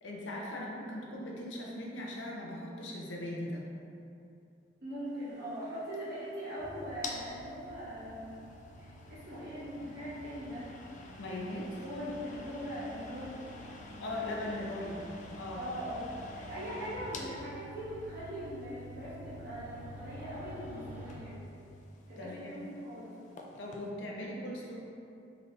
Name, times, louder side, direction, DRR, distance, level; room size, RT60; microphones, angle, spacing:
voice 1, 0.0-3.6 11.2-11.8 14.0-15.7 22.2-22.7 23.6-24.8, left 1 dB, 90° left, -2 dB, 0.6 m, -39 dB
voice 2, 4.8-8.4 8.8-10.7 11.8-14.3 15.6-21.4 22.1-23.1, equal, 60° right, -11 dB, 1.5 m, -41 dB
sound 1, 5.2-23.9, left 3 dB, 40° left, 0.3 m, -50 dB
sound 2, 6.6-21.2, equal, 10° right, 0.6 m, -50 dB
3.9 x 2.5 x 3.2 m, 2.6 s
head